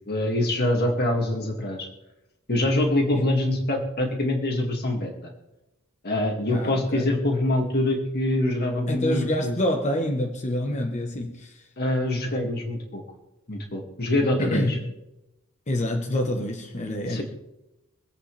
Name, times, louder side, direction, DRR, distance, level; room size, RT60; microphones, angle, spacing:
voice 1, 0.1-1.9 2.5-5.3 6.0-9.6 11.8-13.0 13.5-14.8 17.1-17.2, left 1 dB, 50° left, 2.2 m, -25 dB
voice 2, 6.5-7.1 8.9-11.7 14.4-14.8 15.7-17.2, left 1 dB, 35° left, 1.1 m, -27 dB
25.0 x 8.6 x 3.3 m
head